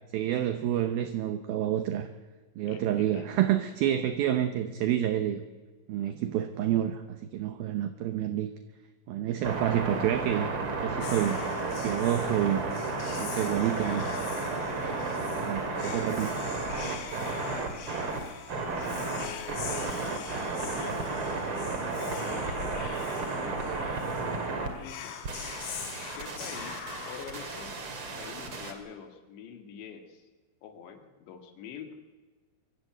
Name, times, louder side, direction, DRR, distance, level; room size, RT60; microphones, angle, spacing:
voice 1, 0.1-2.1 2.6-5.4 5.9-8.5 9.1-10.5 10.8-11.4 11.8-12.7 13.2-14.1 15.4-16.3, right 11 dB, 75° right, 9 dB, 2.2 m, -28 dB
voice 2, 2.6-3.7 13.6-14.0 15.7-16.2 17.3-17.8 18.6-20.1 20.6-23.8 24.8-25.2 26.2-27.8 28.2-30.3 30.6-32.2, left 7 dB, 70° left, 6 dB, 3.8 m, -46 dB
sound 1, 9.4-24.7 25.2-28.7, right 3 dB, 40° right, 2.2 m, -33 dB
Whispering, 11.0-28.1, left 7 dB, 90° left, 4.2 m, -43 dB
sound 2, 11.3-27.1, left 1 dB, 15° left, 2.8 m, -52 dB
24.5 x 15.5 x 7.9 m, 1.3 s
omnidirectional pair, 5.4 m